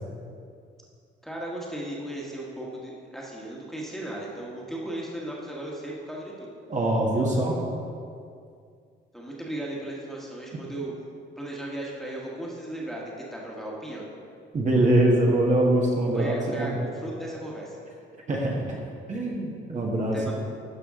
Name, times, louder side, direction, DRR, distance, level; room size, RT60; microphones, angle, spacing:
voice 1, 1.2-6.5 9.1-10.9 11.4-14.1 16.1-17.8 20.1-20.3, right 1 dB, ahead, -4 dB, 1.5 m, -36 dB
voice 2, 6.7-7.6 14.5-16.8 18.3-18.6 19.1-20.3, right 1 dB, 40° right, -2 dB, 1.4 m, -23 dB
12.5 x 5.0 x 3.7 m, 2.4 s
cardioid pair, 105°, 20 cm